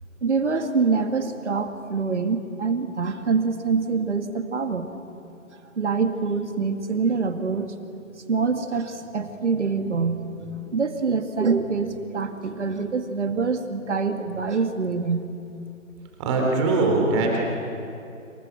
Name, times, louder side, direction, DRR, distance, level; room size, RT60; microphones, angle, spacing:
voice 1, 0.2-4.9 5.8-7.8 8.3-15.2, right 4 dB, 55° right, 7 dB, 2.1 m, -25 dB
voice 2, 16.2-17.4, right 3 dB, 20° right, 0 dB, 3.6 m, -21 dB
28.0 x 27.5 x 6.1 m, 2.7 s
figure-of-eight pair, 145°, 41 cm